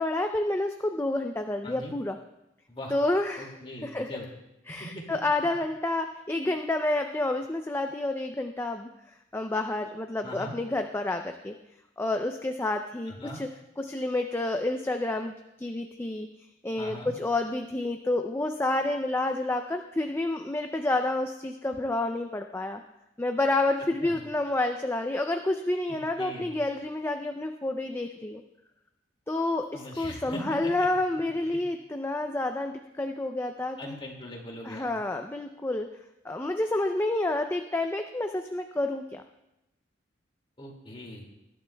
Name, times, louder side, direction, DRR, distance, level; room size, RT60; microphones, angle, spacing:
voice 1, 0.0-2.2 2.9-3.5 3.8-4.1 4.7-8.9 9.3-11.5 12.0-13.5 13.8-15.3 15.6-16.3 16.6-22.8 23.2-28.4 29.3-34.0 34.6-35.9 36.2-39.2, left 2 dB, 10° left, 5 dB, 0.4 m, -29 dB
voice 2, 1.6-1.9 2.7-2.9 3.4-4.3 4.8-5.0 10.2-10.6 13.1-13.4 16.8-17.1 24.0-24.2 25.9-26.5 29.7-30.9 33.8-34.9 40.6-41.2, left 1 dB, 30° left, 0 dB, 2.2 m, -41 dB
19.5 x 11.5 x 2.3 m, 0.89 s
head